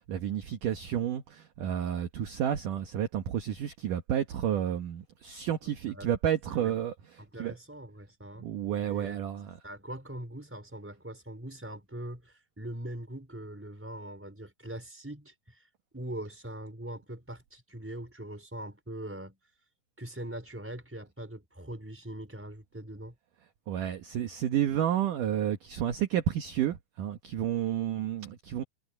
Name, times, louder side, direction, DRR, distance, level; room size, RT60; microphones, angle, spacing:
voice 1, 0.1-6.9 7.4-7.5 8.4-9.5 23.7-28.6, right 10 dB, 65° right, 2.3 m, -31 dB
voice 2, 5.6-6.1 6.5-6.8 7.2-8.5 8.8-9.2 9.6-15.6 15.9-19.4 20.0-23.1, right 1 dB, 5° right, 4.3 m, -42 dB
omnidirectional pair, 5.1 m